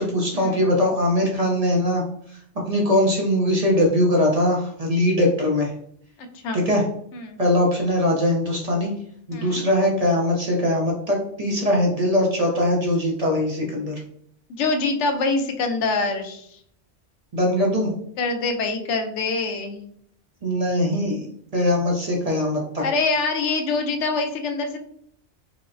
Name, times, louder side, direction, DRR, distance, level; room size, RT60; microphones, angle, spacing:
voice 1, 0.0-2.0 2.6-5.7 6.5-6.8 7.4-8.9 9.3-14.0 17.3-17.9 20.4-22.8, left 1 dB, 40° right, -1 dB, 0.6 m, -21 dB
voice 2, 9.3-9.6 14.5-16.6 18.2-19.9 22.8-24.8, left 3 dB, 80° left, 6 dB, 0.9 m, -25 dB
4.7 x 2.0 x 2.5 m, 0.66 s
omnidirectional pair, 1.2 m